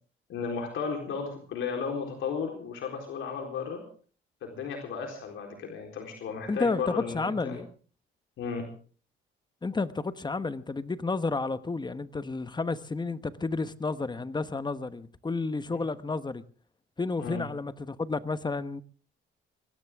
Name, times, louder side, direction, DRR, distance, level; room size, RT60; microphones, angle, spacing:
voice 1, 0.3-3.8 4.4-7.6 8.4-8.6 17.2-17.5, left 5 dB, 75° left, 4.0 m, -34 dB
voice 2, 6.5-7.7 9.6-16.4 17.0-18.8, left 3 dB, 20° left, 1.1 m, -31 dB
22.5 x 16.5 x 3.6 m
cardioid pair, 90°, 20 cm